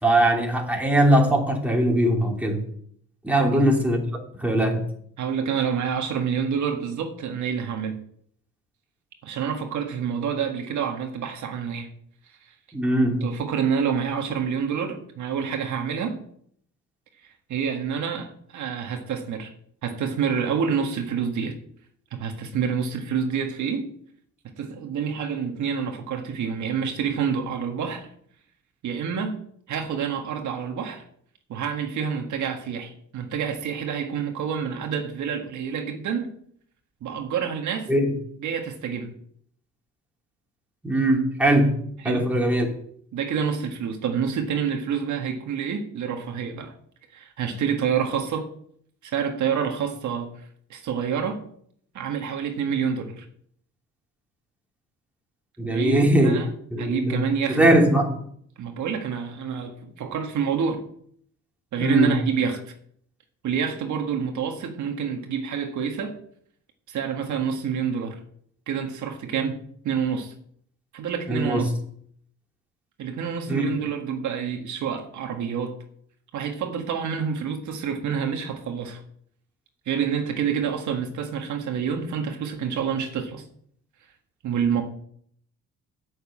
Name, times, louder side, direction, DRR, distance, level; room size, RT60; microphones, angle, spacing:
voice 1, 0.0-2.6 3.2-4.0 4.4-4.8 12.7-13.2 37.9-38.1 40.8-41.8 42.0-42.7 55.6-56.4 56.7-58.2 61.8-62.1 71.3-71.6 73.5-73.7, right 1 dB, 5° right, 3.1 m, -20 dB
voice 2, 5.2-8.0 9.2-11.9 13.2-16.2 17.5-19.5 19.8-21.6 22.1-23.9 24.6-28.1 28.8-29.4 29.7-31.0 31.5-36.3 37.0-37.9 38.4-39.1 42.0-42.3 43.1-46.7 47.1-48.5 49.0-50.3 50.7-51.4 51.9-53.2 55.6-56.5 56.8-57.6 58.6-60.8 61.7-62.7 63.4-66.2 66.9-68.2 68.7-69.6 69.8-70.3 70.9-71.7 73.0-75.8 76.3-79.0 79.8-83.4 84.4-84.8, right 7 dB, 75° right, 1.7 m, -28 dB
9.0 x 6.7 x 8.5 m
cardioid pair, 90°, 30 cm